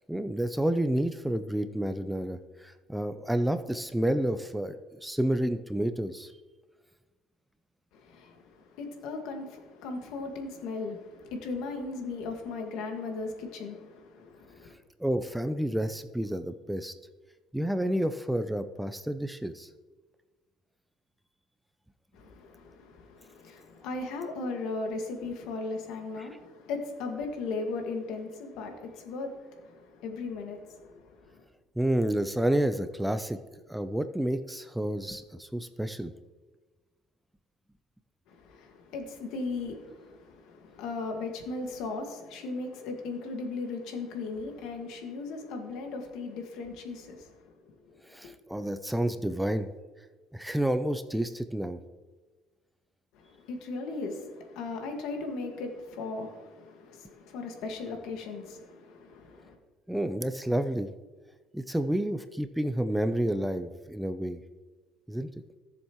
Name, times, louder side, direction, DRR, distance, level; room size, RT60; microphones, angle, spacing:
voice 1, 0.0-6.3 15.0-16.9 17.5-19.7 26.2-26.3 31.8-33.4 33.7-36.1 48.0-49.7 50.3-51.8 59.9-60.9 61.5-64.4 65.1-65.3, right 1 dB, 5° right, 0.4 m, -30 dB
voice 2, 7.9-14.7 22.1-31.4 38.3-48.0 48.2-48.3 53.1-59.6, left 3 dB, 75° left, 1.8 m, -37 dB
17.5 x 7.2 x 3.1 m
cardioid pair, 130°, 0 cm